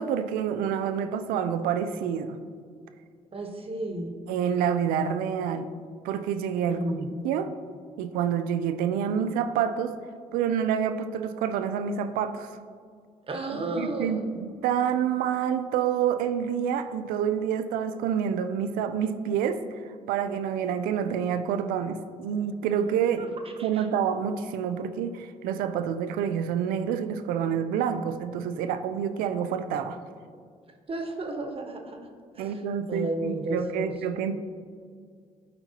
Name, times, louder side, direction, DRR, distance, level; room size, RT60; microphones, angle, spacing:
voice 1, 0.0-2.4 4.3-5.7 6.0-6.8 7.2-7.5 8.0-10.0 10.3-12.5 13.5-19.8 20.1-23.3 23.6-30.0 32.4-34.4, right 8 dB, 90° right, 10 dB, 0.4 m, -28 dB
voice 2, 3.3-4.1 6.6-7.1 13.3-14.3 23.2-23.3 30.9-32.0 32.3-32.5 32.9-33.9, right 1 dB, 40° right, 3 dB, 1.1 m, -32 dB
12.0 x 4.4 x 2.9 m, 2.1 s
supercardioid pair, 60°, 14 cm